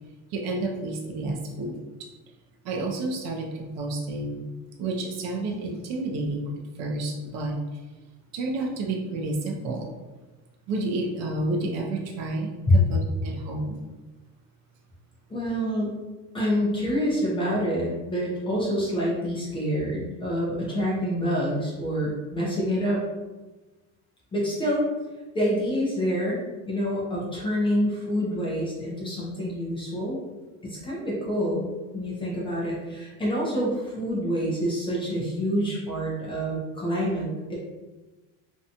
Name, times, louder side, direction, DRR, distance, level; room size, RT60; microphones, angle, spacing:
voice 1, 0.3-1.8 2.6-4.4 4.8-7.8 8.3-9.9 10.7-13.8, right 2 dB, 50° right, 1 dB, 0.4 m, -30 dB
voice 2, 15.3-16.0 16.3-23.1 24.3-24.8 25.3-30.2 30.6-31.6 31.9-37.6, equal, 15° left, -6 dB, 0.4 m, -27 dB
2.6 x 2.2 x 2.7 m, 1.2 s
cardioid pair, 175°, 34 cm